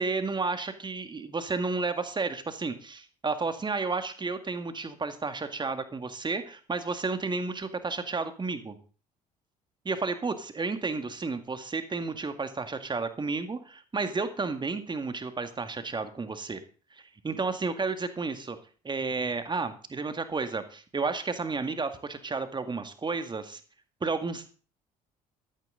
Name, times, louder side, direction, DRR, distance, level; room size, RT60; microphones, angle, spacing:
voice 1, 0.0-8.8 9.9-16.6 17.2-18.6 18.8-23.6 24.0-24.5, right 4 dB, 20° right, 9 dB, 1.9 m, -32 dB
13.0 x 13.0 x 3.8 m, 0.38 s
figure-of-eight pair, 55°, 20 cm